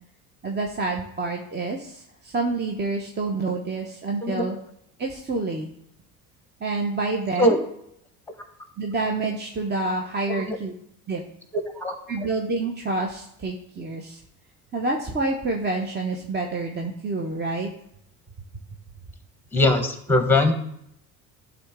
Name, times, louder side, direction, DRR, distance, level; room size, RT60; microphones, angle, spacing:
voice 1, 0.4-4.6 5.0-5.7 6.6-7.6 8.8-10.7 11.1-11.2 12.1-14.2 14.7-17.7, right 3 dB, 25° right, 2 dB, 1.0 m, -28 dB
voice 2, 19.5-20.5, left 2 dB, 5° left, 6 dB, 1.3 m, -21 dB
11.5 x 3.8 x 3.7 m, 0.75 s
supercardioid pair, 80°, 42 cm